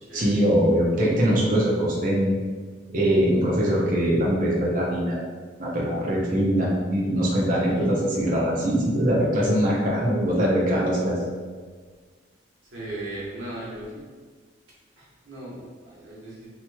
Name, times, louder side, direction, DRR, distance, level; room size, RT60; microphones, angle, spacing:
voice 1, 0.1-2.4 2.9-5.2 5.6-11.2, equal, 45° right, -5 dB, 0.6 m, -22 dB
voice 2, 12.7-14.0 15.0-16.5, right 1 dB, 85° right, -7 dB, 1.1 m, -37 dB
2.9 x 2.9 x 2.2 m, 1.5 s
head